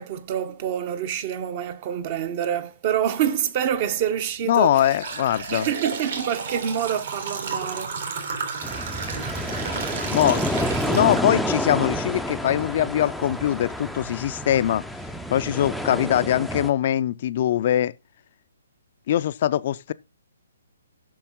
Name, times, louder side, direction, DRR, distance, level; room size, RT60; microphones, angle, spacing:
voice 1, 0.0-5.0 5.5-8.0, right 9 dB, 35° right, 0.9 m, -27 dB
sound 1, 3.8-4.0 4.5-11.6 12.1-12.2 13.0-13.1 13.7-13.8 14.2-14.4, right 5 dB, 60° right, 2.9 m, -32 dB
voice 2, 4.5-5.7 10.1-10.4 10.8-14.8 15.3-17.9 19.1-19.9, left 11 dB, 45° left, 0.4 m, -22 dB
sound 2, 8.6-16.7, equal, ahead, 0.5 m, -29 dB
7.8 x 6.2 x 3.7 m
figure-of-eight pair, 135°, 0 cm